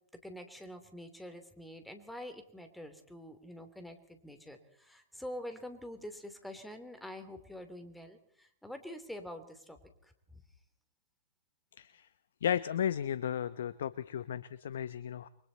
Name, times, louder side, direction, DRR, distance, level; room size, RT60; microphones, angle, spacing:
voice 1, 0.1-9.8 10.0-10.4, left 1 dB, 5° left, 8 dB, 3.2 m, -46 dB
voice 2, 11.8-12.1 12.4-15.3, left 9 dB, 60° left, 16 dB, 0.9 m, -34 dB
29.5 x 23.5 x 4.2 m, 0.68 s
figure-of-eight pair, 110°, 0 cm